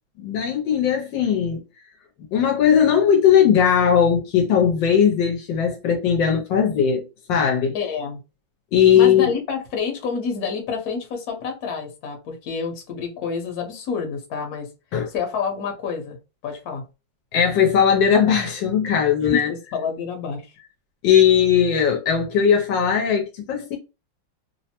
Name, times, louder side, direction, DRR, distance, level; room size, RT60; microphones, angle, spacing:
voice 1, 0.2-1.6 2.3-7.8 8.7-9.3 14.9-15.1 17.3-19.5 21.0-23.8, left 8 dB, 80° left, 1.3 m, -18 dB
voice 2, 7.7-8.2 8.9-14.7 15.1-16.2 16.4-16.8 19.2-20.5, left 5 dB, 60° left, 1.2 m, -28 dB
3.3 x 2.0 x 2.8 m
omnidirectional pair, 2.0 m